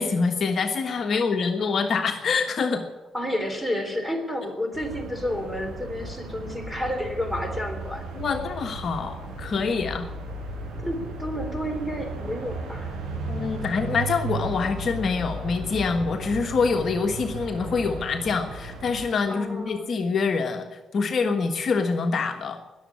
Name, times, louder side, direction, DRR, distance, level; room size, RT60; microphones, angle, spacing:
voice 1, 0.0-2.8 8.1-10.1 13.3-22.6, left 4 dB, 50° left, 4 dB, 1.4 m, -25 dB
voice 2, 3.1-8.0 10.8-13.0 19.3-19.9, equal, ahead, 5 dB, 3.4 m, -30 dB
sound 1, 4.7-19.0, right 2 dB, 90° right, 6.5 m, -35 dB
20.0 x 7.4 x 9.8 m, 1.2 s
cardioid pair, 90°, 0 cm